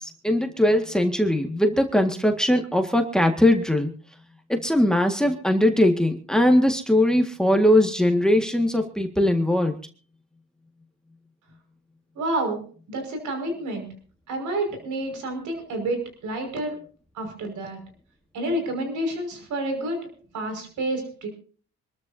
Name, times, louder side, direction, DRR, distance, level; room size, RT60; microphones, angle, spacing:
voice 1, 0.0-3.9 4.5-9.8, left 1 dB, ahead, 5 dB, 1.8 m, -20 dB
voice 2, 12.2-12.6 12.9-13.9 14.3-16.8 17.1-17.8 18.3-20.1 20.3-21.3, right 1 dB, 80° right, 4 dB, 5.6 m, -29 dB
26.0 x 13.0 x 2.8 m, 0.42 s
cardioid pair, 90°, 30 cm